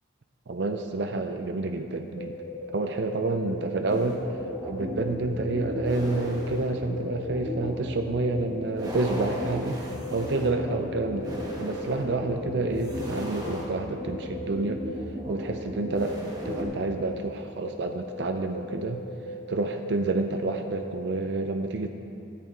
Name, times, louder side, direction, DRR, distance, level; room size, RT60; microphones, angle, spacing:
voice 1, 0.5-2.3 2.7-4.2 4.6-14.8 15.2-19.0 19.5-21.9, right 3 dB, 65° right, 5 dB, 0.5 m, -29 dB
sound 1, 2.2-3.6 3.9-7.7 8.0-9.6 9.9-13.5 14.0-15.0 15.3-15.4 15.8-17.2 17.6-21.2, left 1 dB, 65° left, 1.3 m, -39 dB
sound 2, 3.9-16.6, left 1 dB, 20° right, 1.4 m, -36 dB
11.0 x 8.6 x 4.5 m, 2.6 s
head